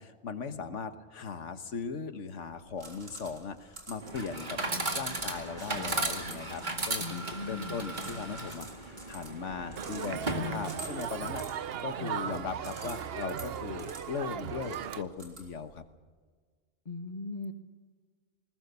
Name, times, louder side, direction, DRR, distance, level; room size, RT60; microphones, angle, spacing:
voice 1, 0.0-4.6 4.9-15.8, left 5 dB, 70° left, 9 dB, 1.6 m, -38 dB
sound 1, 2.5-15.8, right 2 dB, 75° right, 3.9 m, -50 dB
Chatter / Coin (dropping), 4.0-11.0, right 2 dB, 35° right, 2.3 m, -36 dB
voice 2, 7.0-7.9 12.0-12.2 16.8-17.5, left 3 dB, 35° left, 8 dB, 1.5 m, -40 dB
Crowd, 9.8-15.0, right 8 dB, 55° right, 0.9 m, -37 dB
20.0 x 20.0 x 6.9 m, 1.5 s
omnidirectional pair, 1.3 m